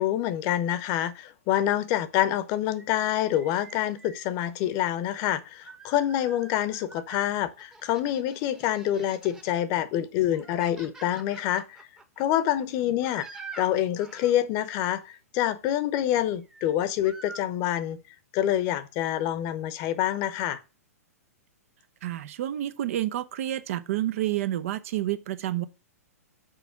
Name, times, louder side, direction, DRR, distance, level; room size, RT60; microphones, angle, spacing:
voice 1, 0.0-11.8 12.2-18.0 18.3-20.6, left 12 dB, 40° left, 0.8 m, -27 dB
sound 1, 2.8-4.2 5.2-7.3 7.6-9.6 10.0-14.4 16.4-16.7 17.0-17.4, right 4 dB, 5° right, 0.9 m, -47 dB
voice 2, 22.0-25.6, right 13 dB, 60° right, 0.7 m, -29 dB
6.5 x 4.5 x 5.8 m
hypercardioid pair, 125°, 8 cm